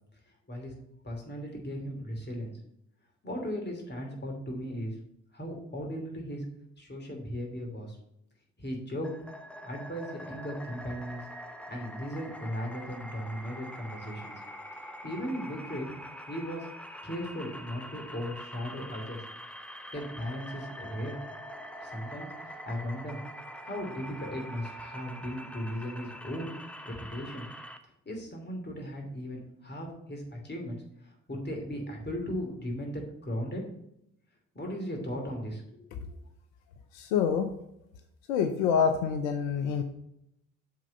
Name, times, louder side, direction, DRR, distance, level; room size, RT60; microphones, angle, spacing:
voice 1, 1.0-2.5 3.2-4.9 5.3-6.4 6.8-8.0 8.6-9.1 9.6-11.2 11.7-14.3 15.0-15.9 16.3-16.7 17.0-19.2 19.9-21.2 21.8-23.2 23.6-26.5 26.8-27.5 28.1-33.6 34.5-36.1, equal, 25° left, 1 dB, 2.8 m, -37 dB
sound 1, 9.0-27.8, equal, 5° left, 0.8 m, -44 dB
voice 2, 36.9-37.5 38.3-39.8, left 7 dB, 80° left, 7 dB, 0.6 m, -26 dB
7.4 x 3.8 x 6.5 m, 0.78 s
hypercardioid pair, 45°, 40 cm